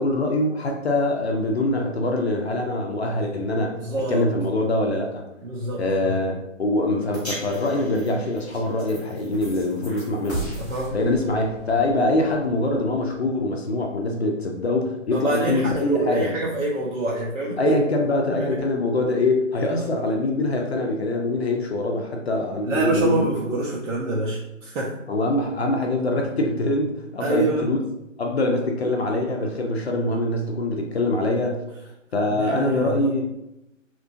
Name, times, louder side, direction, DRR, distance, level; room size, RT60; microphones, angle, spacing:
voice 1, 0.0-3.8 4.1-5.2 5.8-10.5 10.9-16.3 17.6-23.6 25.1-27.8 28.2-31.6 32.1-33.2, left 2 dB, 55° left, 2 dB, 0.5 m, -24 dB
voice 2, 3.8-4.2 5.4-6.2 10.6-10.9 15.1-17.8 18.3-18.6 22.6-24.9 27.2-27.7 32.3-33.1, right 2 dB, 75° right, -4 dB, 0.7 m, -26 dB
sound 1, 7.1-13.5, right 1 dB, 5° left, 0.6 m, -38 dB
2.8 x 2.5 x 2.5 m, 0.89 s
hypercardioid pair, 160°, 40 cm